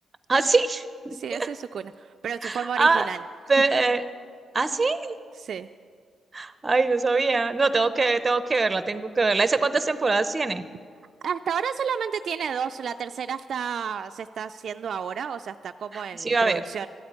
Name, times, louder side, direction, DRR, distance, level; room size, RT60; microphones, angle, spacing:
voice 1, 0.3-1.5 2.4-3.1 3.5-4.0 4.5-5.1 6.3-10.6 15.9-16.6, right 3 dB, 25° right, 12 dB, 0.7 m, -23 dB
voice 2, 1.1-3.2 5.3-5.7 9.5-9.7 11.2-16.9, right 7 dB, 60° right, 8 dB, 0.3 m, -31 dB
13.0 x 8.7 x 9.5 m, 2.1 s
cardioid pair, 95°, 0 cm